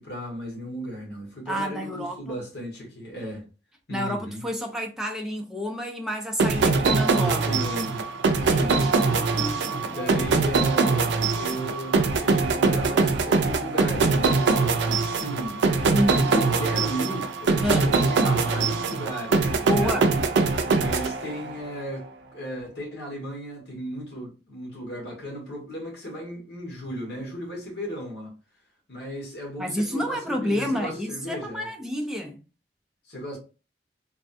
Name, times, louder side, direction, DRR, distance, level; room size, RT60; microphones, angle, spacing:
voice 1, 0.0-3.5 3.9-4.5 7.5-8.0 8.4-8.9 9.8-15.6 16.1-20.0 20.8-28.3 28.9-31.7 33.1-33.4, equal, 70° left, 1.4 m, -35 dB
voice 2, 1.5-2.4 3.9-7.5 8.4-10.3 15.9-16.3 17.6-17.9 19.7-20.1 29.6-32.4, equal, 5° right, 0.5 m, -29 dB
sound 1, 6.4-21.7, right 4 dB, 85° right, 0.4 m, -23 dB
3.4 x 2.2 x 2.6 m
head